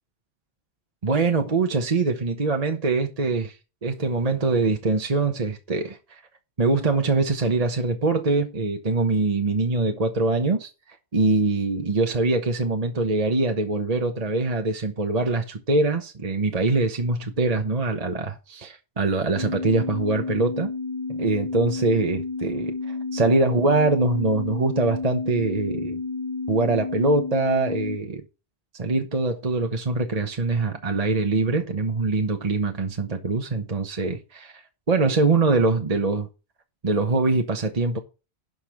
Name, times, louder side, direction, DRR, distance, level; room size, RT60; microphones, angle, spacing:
voice 1, 1.0-3.6 3.8-6.2 6.6-10.7 11.1-20.7 21.1-26.0 26.5-28.2 28.8-34.6 34.9-36.3 36.8-38.0, right 3 dB, 40° right, 1.1 m, -23 dB
sound 1, 19.3-28.0, left 3 dB, 40° left, 0.4 m, -31 dB
11.5 x 5.4 x 5.9 m
omnidirectional pair, 1.1 m